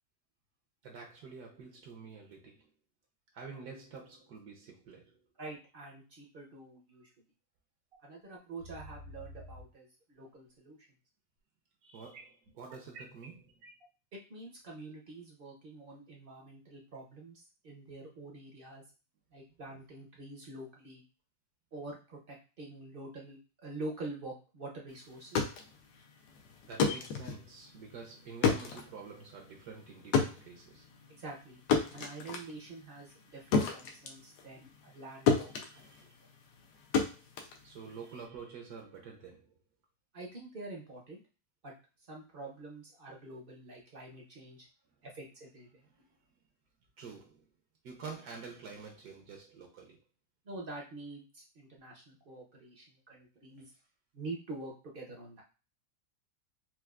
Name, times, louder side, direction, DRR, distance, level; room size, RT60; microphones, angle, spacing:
voice 1, 0.8-2.7 3.3-5.3 11.8-13.6 26.7-30.9 35.5-36.2 37.6-39.5 45.9-46.1 47.0-47.5 47.8-50.0, right 5 dB, 70° right, 1.1 m, -48 dB
voice 2, 5.4-7.1 8.0-10.8 14.1-18.8 19.3-21.0 21.7-25.4 31.1-31.6 31.9-35.9 40.1-41.2 41.6-41.7 42.1-44.6 45.0-45.8 50.5-53.7 54.1-55.4, right 2 dB, 50° right, 0.7 m, -46 dB
sound 1, 7.9-8.0 8.6-9.6 12.1-13.8, equal, 85° right, 1.7 m, -49 dB
sound 2, 25.1-35.0 35.3-38.2, left 5 dB, 75° left, 1.2 m, -32 dB
4.5 x 2.4 x 2.3 m
omnidirectional pair, 1.9 m